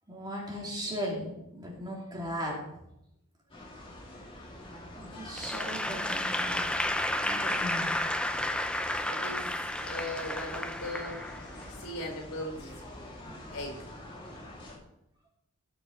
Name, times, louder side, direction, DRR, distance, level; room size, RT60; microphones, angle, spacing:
voice 1, 0.1-2.6 4.9-6.7 7.2-8.1 13.2-13.3, equal, 20° right, -3 dB, 3.2 m, -37 dB
sound 1, 3.5-14.8, left 1 dB, 25° left, 2.6 m, -46 dB
Applause / Crowd, 5.4-11.8, left 1 dB, 5° left, 0.5 m, -32 dB
voice 2, 9.0-9.5 9.8-11.2 11.7-12.7 13.5-13.8, left 1 dB, 75° left, 2 dB, 4.4 m, -38 dB
18.5 x 6.7 x 4.3 m, 0.83 s
head